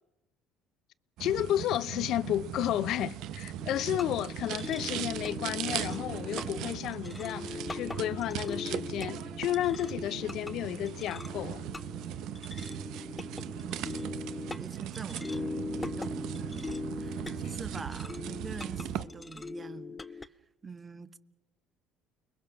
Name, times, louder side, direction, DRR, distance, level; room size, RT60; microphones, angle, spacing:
voice 1, 1.2-11.6, left 12 dB, 65° left, 0.8 m, -32 dB
sound 1, 1.2-19.0, right 11 dB, 70° right, 0.8 m, -38 dB
sound 2, 3.6-20.3, left 3 dB, 20° left, 0.9 m, -41 dB
voice 2, 13.7-14.0 14.6-15.4 15.7-16.6 16.9-20.3 20.6-21.2, right 4 dB, 30° right, 1.5 m, -45 dB
30.0 x 21.5 x 6.3 m
supercardioid pair, 70°, 0 cm